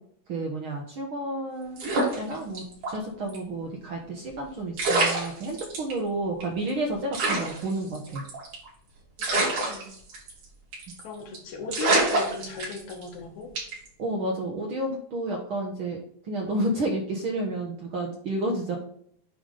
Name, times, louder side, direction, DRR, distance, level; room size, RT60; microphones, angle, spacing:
voice 1, 0.3-8.2 14.0-16.0 16.3-18.8, right 1 dB, 60° right, 0 dB, 1.4 m, -31 dB
sound 1, 1.8-3.0 3.3-3.4 4.4-4.5 4.8-5.9 6.4-6.5 6.7-6.8 7.1-8.7 9.2-10.4 10.7-11.0 11.3-11.4 11.7-13.1 13.6-13.9, right 2 dB, 80° right, 4.5 m, -26 dB
voice 2, 9.2-10.0 11.0-13.5, left 4 dB, 70° left, 1 dB, 2.7 m, -38 dB
9.4 x 3.4 x 5.2 m, 0.65 s
omnidirectional pair, 3.6 m